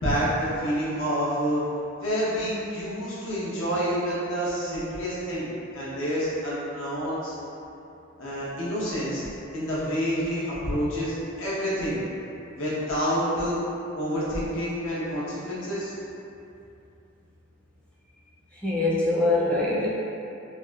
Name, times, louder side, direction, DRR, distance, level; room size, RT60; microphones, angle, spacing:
voice 1, 0.0-1.6 2.0-5.5 5.7-7.3 8.2-9.2 9.5-12.0 12.5-13.6 13.9-15.9, equal, 80° left, -9 dB, 0.9 m, -28 dB
voice 2, 18.6-19.9, left 2 dB, 5° left, -9 dB, 0.5 m, -23 dB
3.4 x 2.5 x 2.3 m, 2.8 s
head